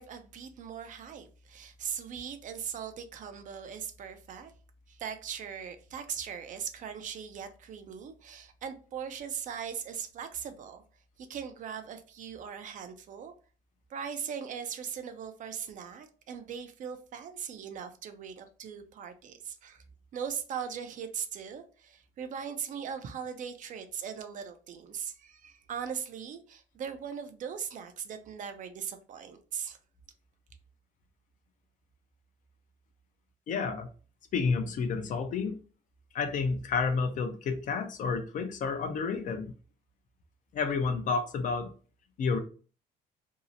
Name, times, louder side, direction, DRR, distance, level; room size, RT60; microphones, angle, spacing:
voice 1, 0.0-4.5 4.9-10.8 11.2-13.3 13.9-19.8 20.1-29.8, right 7 dB, 50° right, 0.4 m, -39 dB
voice 2, 33.5-33.9 34.3-35.6 36.1-39.5 40.5-41.7 42.2-42.4, left 5 dB, 50° left, 0.5 m, -30 dB
2.7 x 2.0 x 2.6 m
cardioid pair, 110°, 17 cm